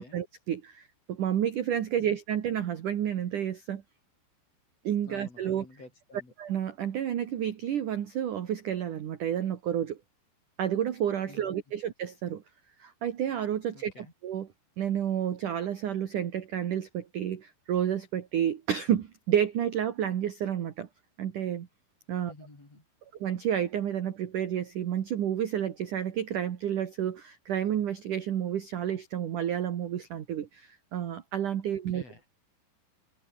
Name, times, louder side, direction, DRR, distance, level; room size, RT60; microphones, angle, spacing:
voice 1, 0.0-3.8 4.8-5.6 6.4-10.0 10.6-12.4 12.8-14.5 14.8-20.9 21.2-21.7 22.1-22.3 23.2-32.0, right 10 dB, 60° right, 2.3 m, -30 dB
voice 2, 5.0-6.3 11.3-11.6 13.7-14.1 22.3-22.8 31.9-32.3, left 2 dB, 30° left, 8.8 m, -50 dB
omnidirectional pair, 5.8 m